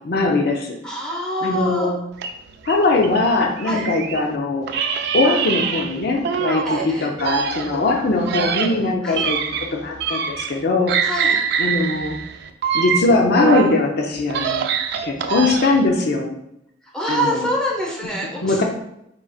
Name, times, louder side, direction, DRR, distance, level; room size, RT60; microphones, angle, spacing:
voice 1, 0.1-0.8 1.4-1.9 2.7-4.7 5.1-9.4 9.7-11.1 11.6-12.2 12.7-14.7 15.0-16.4 17.1-17.5 18.4-18.6, left 3 dB, 55° left, 1 dB, 0.6 m, -20 dB
voice 2, 0.8-1.9 3.6-3.8 6.7-7.1 9.0-9.2 11.0-11.4 16.9-18.6, equal, 5° left, -3 dB, 0.9 m, -25 dB
sound 1, 2.2-4.3 4.7-6.9 7.2-10.6 10.9-13.8 14.2-15.9, right 6 dB, 60° right, 0.4 m, -24 dB
4.7 x 3.9 x 2.4 m, 0.79 s
head